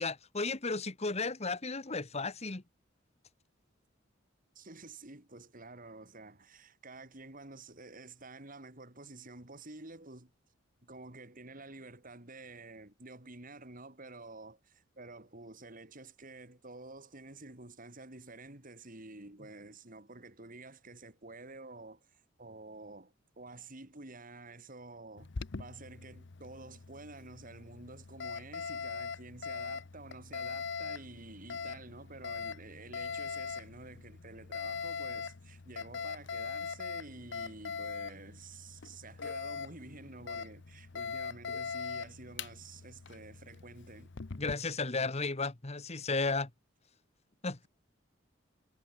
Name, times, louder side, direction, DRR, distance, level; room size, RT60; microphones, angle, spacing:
voice 1, 0.0-2.6 44.4-46.5 47.4-47.7, left 3 dB, 35° left, 1.4 m, -34 dB
voice 2, 4.5-10.3 10.8-25.3 25.6-44.1, right 2 dB, 45° right, 3.3 m, -50 dB
Alarm, 25.2-44.6, left 5 dB, 60° left, 0.8 m, -41 dB
head